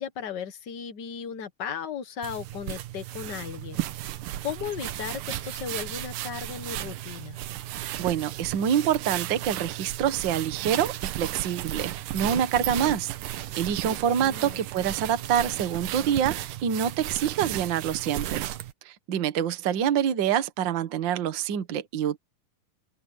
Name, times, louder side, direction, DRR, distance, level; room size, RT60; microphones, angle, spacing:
voice 1, 0.0-4.2 4.4-7.4 13.8-14.6, left 7 dB, 65° left, 1.0 m, -36 dB
sound 1, 2.2-18.7, right 14 dB, 90° right, 2.6 m, -34 dB
voice 2, 7.8-18.4 18.8-22.2, right 9 dB, 50° right, 1.4 m, -26 dB
open air
omnidirectional pair, 3.7 m